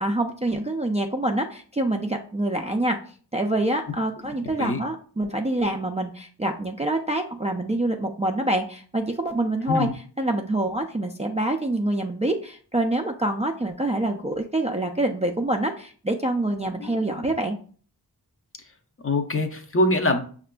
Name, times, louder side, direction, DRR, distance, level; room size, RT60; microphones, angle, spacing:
voice 1, 0.0-3.0 3.3-9.9 10.2-17.6, right 1 dB, 20° right, 2 dB, 0.3 m, -26 dB
voice 2, 16.8-17.3 19.0-20.2, left 2 dB, 35° left, 4 dB, 0.6 m, -24 dB
5.8 x 2.4 x 2.2 m, 0.43 s
wide cardioid pair, 45°, 40 cm